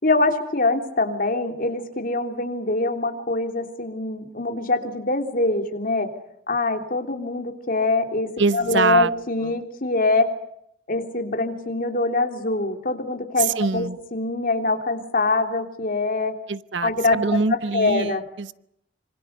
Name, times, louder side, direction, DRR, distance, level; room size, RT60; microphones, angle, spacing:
voice 1, 0.0-6.1 6.5-10.3 10.9-13.8 14.1-16.3 16.8-17.4 17.7-18.2, left 2 dB, 50° left, 5 dB, 3.4 m, -24 dB
voice 2, 8.4-9.1 9.4-9.6 13.4-14.0 16.5-18.5, right 4 dB, 80° right, 16 dB, 0.9 m, -24 dB
26.5 x 25.5 x 6.8 m, 0.76 s
head